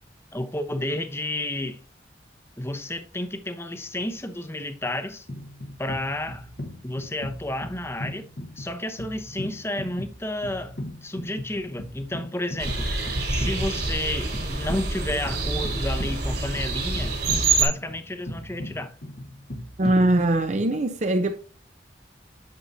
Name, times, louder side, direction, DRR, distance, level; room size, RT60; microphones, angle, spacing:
voice 1, 0.3-1.8 2.6-5.3 5.8-6.5 6.8-8.3 8.6-10.7 11.0-12.9 13.3-17.2 17.6-18.9, left 1 dB, 15° left, 0.9 m, -31 dB
sound 1, 5.3-20.7, left 1 dB, 60° left, 1.2 m, -38 dB
sound 2, 12.6-17.6, right 3 dB, 60° right, 3.1 m, -26 dB
voice 2, 19.8-21.4, right 1 dB, 40° right, 0.7 m, -21 dB
9.0 x 7.0 x 2.8 m
head